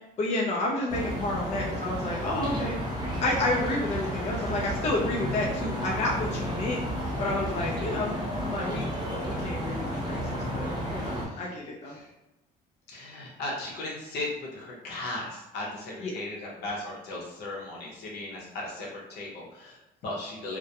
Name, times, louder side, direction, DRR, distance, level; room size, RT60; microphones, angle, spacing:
voice 1, 0.2-2.8 3.2-6.8 7.2-12.0 16.0-16.1, left 2 dB, 40° left, -2 dB, 0.4 m, -30 dB
sound 1, 0.9-11.3, equal, 25° right, 0.8 m, -32 dB
voice 2, 11.1-11.5 11.8-12.1 12.9-20.6, left 2 dB, 75° left, -3 dB, 0.8 m, -37 dB
2.2 x 2.1 x 2.7 m, 0.94 s
cardioid pair, 110°, 17 cm